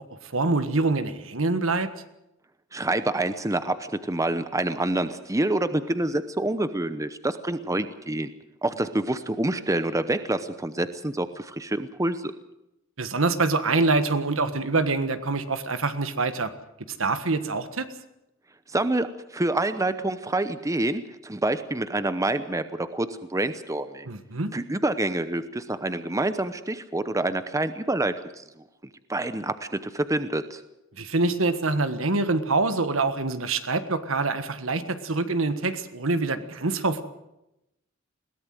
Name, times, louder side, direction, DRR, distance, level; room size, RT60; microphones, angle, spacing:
voice 1, 0.3-1.9 13.0-16.5 16.9-17.9 24.1-24.5 31.0-37.0, right 3 dB, 70° right, 11 dB, 1.5 m, -25 dB
voice 2, 2.7-8.3 8.6-12.3 18.7-24.1 24.5-28.4 29.1-30.6, right 2 dB, 15° right, 12 dB, 0.8 m, -27 dB
21.5 x 17.0 x 7.7 m, 0.89 s
head